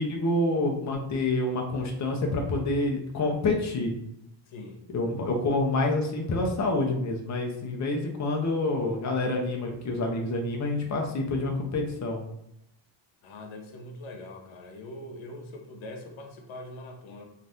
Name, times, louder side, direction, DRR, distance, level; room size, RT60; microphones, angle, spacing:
voice 1, 0.0-3.9 4.9-12.2, left 2 dB, 40° left, 1 dB, 0.6 m, -27 dB
voice 2, 4.5-4.8 13.2-17.3, left 1 dB, 85° left, 2 dB, 0.7 m, -42 dB
2.7 x 2.4 x 3.3 m, 0.79 s
cardioid pair, 130°, 46 cm